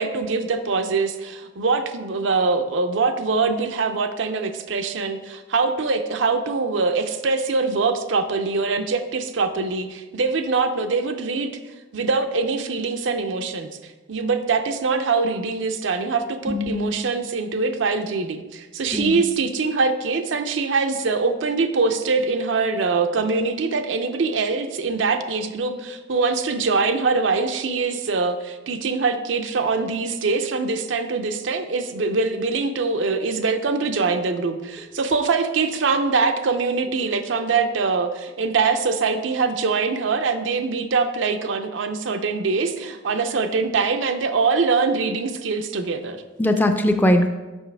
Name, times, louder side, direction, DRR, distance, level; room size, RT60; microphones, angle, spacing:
voice 1, 0.0-11.5 11.9-13.7 14.1-46.2, right 4 dB, 85° right, 7 dB, 0.5 m, -23 dB
voice 2, 16.5-16.9 18.9-19.2 46.4-47.3, left 1 dB, 10° left, 6 dB, 0.4 m, -20 dB
7.0 x 5.6 x 3.4 m, 1.2 s
head